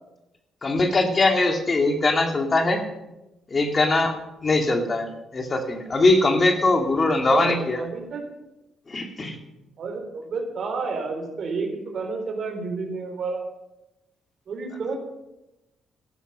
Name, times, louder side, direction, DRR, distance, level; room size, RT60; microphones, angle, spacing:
voice 1, 0.6-2.8 3.5-4.1 4.4-7.9 8.9-9.4, left 2 dB, 35° left, 5 dB, 2.2 m, -21 dB
voice 2, 7.3-8.2 9.8-13.4 14.5-15.0, right 4 dB, 55° right, 4 dB, 3.8 m, -30 dB
14.5 x 12.0 x 5.5 m, 0.95 s
cardioid pair, 90°, 0 cm